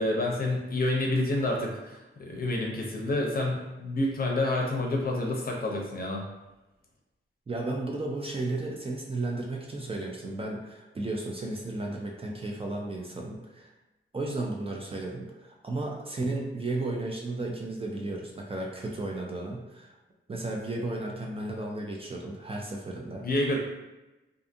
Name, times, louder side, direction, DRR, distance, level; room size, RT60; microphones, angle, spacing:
voice 1, 0.0-6.2 23.2-23.6, left 1 dB, 45° left, 0 dB, 0.6 m, -28 dB
voice 2, 7.5-13.7 14.1-19.9 20.3-23.3, right 2 dB, 25° right, -1 dB, 0.3 m, -34 dB
2.5 x 2.5 x 2.5 m, 1.0 s
wide cardioid pair, 130°, 21 cm